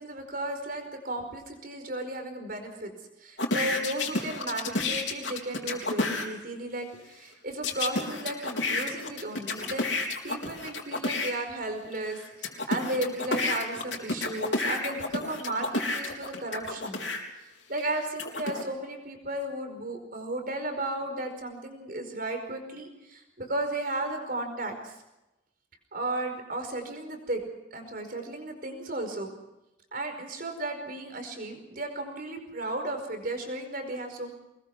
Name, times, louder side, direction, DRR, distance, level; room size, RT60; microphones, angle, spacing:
voice 1, 0.0-2.9 3.2-17.1 17.4-24.9 25.9-27.4 27.7-29.3 29.9-34.3, right 2 dB, 50° right, 5 dB, 5.0 m, -34 dB
sound 1, 3.4-6.3 7.6-11.3 11.9-17.2 17.8-18.6, left 2 dB, 70° left, 3.8 m, -30 dB
24.5 x 21.0 x 6.1 m, 0.93 s
head